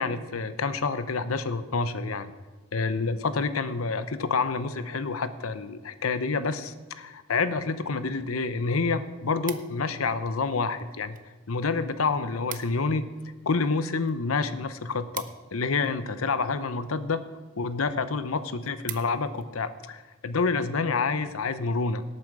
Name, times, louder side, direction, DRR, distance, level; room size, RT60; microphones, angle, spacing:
voice 1, 0.0-2.3 2.7-11.2 11.5-13.0 13.5-15.3 15.5-17.2 17.6-22.0, left 4 dB, 90° left, 12 dB, 0.8 m, -28 dB
sound 1, 9.1-10.1 10.8-11.3 11.6-11.7 12.0-12.1 12.3-12.9 13.3-16.1 16.8-17.2 17.7-17.8 18.1-18.2 18.5-19.5 20.0-20.2, right 12 dB, 40° right, 0.7 m, -42 dB
18.0 x 8.6 x 4.9 m, 1.3 s
head